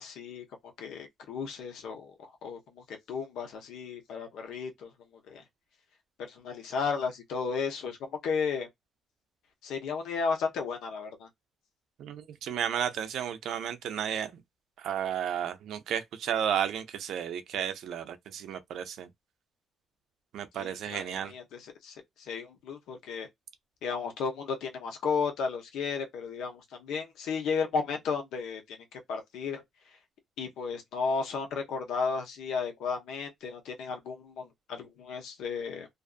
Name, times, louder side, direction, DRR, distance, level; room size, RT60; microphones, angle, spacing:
voice 1, 0.0-4.9 5.3-5.4 6.2-8.7 9.6-11.3 20.5-23.3 23.8-30.0 30.4-35.9, left 5 dB, 85° left, 0.9 m, -34 dB
voice 2, 12.0-14.4 14.8-19.1 20.3-21.3, right 9 dB, 70° right, 0.5 m, -33 dB
2.5 x 2.4 x 2.4 m
cardioid pair, 150°, 0 cm